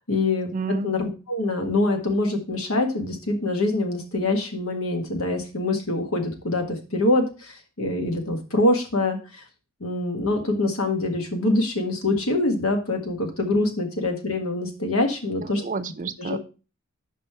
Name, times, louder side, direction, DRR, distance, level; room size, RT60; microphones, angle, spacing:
voice 1, 0.0-9.2 9.8-15.6 16.2-16.4, left 2 dB, 90° left, 4 dB, 1.7 m, -24 dB
voice 2, 0.5-0.9 15.4-16.4, right 4 dB, 40° right, 12 dB, 0.5 m, -30 dB
5.5 x 5.3 x 5.6 m, 0.32 s
head